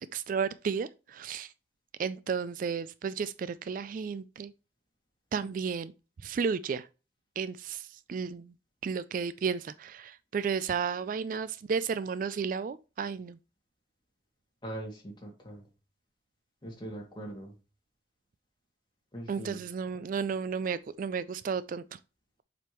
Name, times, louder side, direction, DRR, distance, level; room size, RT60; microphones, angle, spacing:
voice 1, 0.1-1.5 2.0-4.5 5.3-5.9 6.2-6.9 7.4-8.5 8.8-13.4 19.3-22.0, right 6 dB, 50° right, 0.3 m, -33 dB
voice 2, 14.6-15.6 16.6-17.5 19.1-19.6, right 1 dB, 25° left, 2.3 m, -41 dB
7.4 x 5.2 x 3.0 m
head